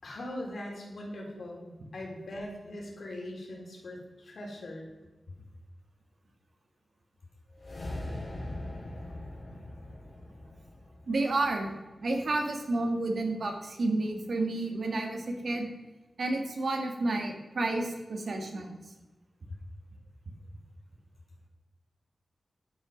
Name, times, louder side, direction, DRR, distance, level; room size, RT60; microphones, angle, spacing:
voice 1, 0.0-4.9, left 1 dB, 75° left, -1 dB, 3.8 m, -41 dB
sound 1, 7.5-11.9, left 1 dB, 45° left, 4.1 m, -41 dB
voice 2, 11.1-11.7 12.0-15.7 16.2-18.8, right 2 dB, 70° right, 3 dB, 2.0 m, -30 dB
11.5 x 9.1 x 5.3 m, 1.2 s
wide cardioid pair, 95°, 0 cm